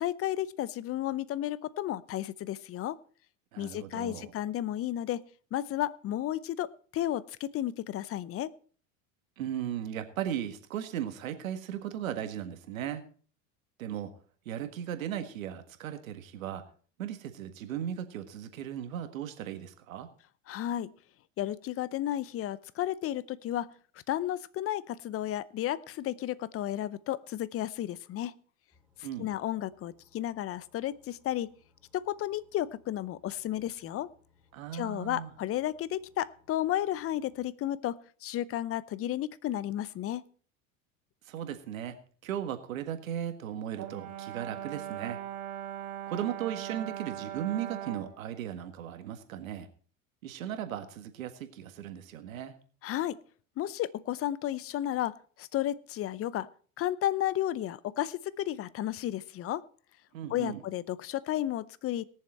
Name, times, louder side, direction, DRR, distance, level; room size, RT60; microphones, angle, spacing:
voice 1, 0.0-3.0 3.6-5.2 5.5-8.5 20.5-20.9 21.4-23.7 24.1-28.3 29.2-31.5 31.9-34.1 34.7-40.2 52.8-53.2 53.6-56.5 56.8-59.6 60.3-62.0, left 12 dB, 35° left, 20 dB, 0.6 m, -33 dB
voice 2, 3.5-4.3 9.4-13.0 13.8-14.1 14.4-16.6 17.0-20.1 29.0-29.3 34.5-35.3 41.2-42.0 42.2-45.2 46.1-49.7 50.2-52.6 60.1-60.6, right 10 dB, 90° right, 8 dB, 1.7 m, -37 dB
sound 1, 28.7-37.4, left 5 dB, 5° right, 4.3 m, -68 dB
Brass instrument, 43.8-48.1, right 11 dB, 45° right, 1.7 m, -40 dB
19.5 x 7.2 x 4.3 m, 0.43 s
supercardioid pair, 100°, 39 cm